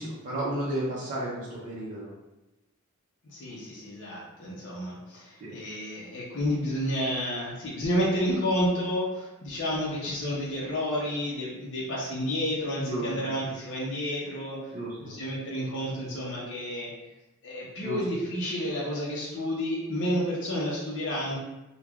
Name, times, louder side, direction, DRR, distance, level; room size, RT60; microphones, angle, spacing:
voice 1, 0.0-2.1 5.4-5.6 12.9-13.3 14.7-15.2 17.8-18.0, right 1 dB, 40° right, -6 dB, 0.5 m, -33 dB
voice 2, 3.2-14.7 15.0-16.9 17.4-21.4, equal, 55° left, -6 dB, 0.6 m, -30 dB
3.1 x 2.2 x 2.3 m, 1.0 s
head